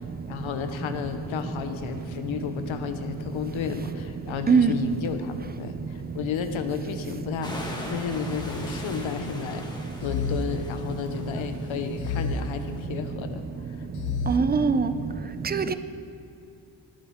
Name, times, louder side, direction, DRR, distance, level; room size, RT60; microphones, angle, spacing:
voice 1, 0.3-13.9, left 7 dB, 90° left, 8 dB, 0.9 m, -32 dB
sound 1, 7.4-12.8, left 1 dB, 10° left, 1.8 m, -41 dB
sound 2, 8.4-9.4 10.0-11.3 12.0-13.3 14.0-15.1, left 3 dB, 55° left, 0.6 m, -33 dB
voice 2, 14.3-14.9 15.5-15.7, right 5 dB, 20° right, 12 dB, 0.5 m, -21 dB
19.5 x 8.7 x 3.6 m, 2.7 s
cardioid pair, 100°, 45 cm